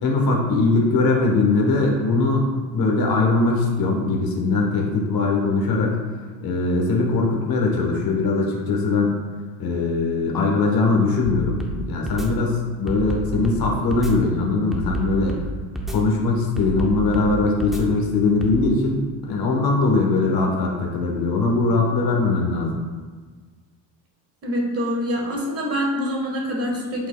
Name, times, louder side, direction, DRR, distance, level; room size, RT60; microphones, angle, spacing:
voice 1, 0.0-2.5 2.7-6.0 6.4-9.1 9.6-15.4 15.9-19.0 19.3-22.8, left 3 dB, 45° left, 0 dB, 1.2 m, -21 dB
sound 1, 11.3-11.8 12.1-12.3 12.9-13.6 13.9-14.1 14.7-15.4 15.8-16.0 16.6-17.3 17.6-17.8 18.4-18.6, right 2 dB, ahead, 0.6 m, -29 dB
voice 2, 24.4-27.1, equal, 30° right, 0 dB, 1.4 m, -25 dB
8.1 x 5.4 x 2.2 m, 1.5 s
cardioid pair, 130°, 48 cm